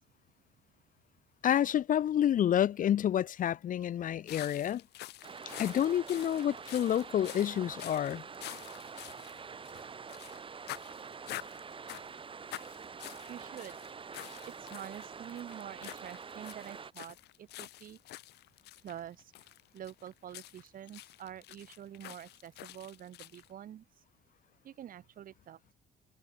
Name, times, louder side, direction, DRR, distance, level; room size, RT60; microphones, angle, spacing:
voice 1, 1.4-4.8 5.6-8.2, left 10 dB, 50° left, 1.3 m, -29 dB
sound 1, 4.3-10.4 10.7-12.2 12.5-23.5, left 16 dB, 80° left, 3.7 m, -48 dB
sound 2, 5.2-16.9, right 5 dB, 30° right, 3.1 m, -46 dB
voice 2, 13.3-13.9 14.4-18.0 18.8-19.5 19.7-23.9 24.6-25.7, right 10 dB, 55° right, 5.0 m, -47 dB
cardioid pair, 110°, 17 cm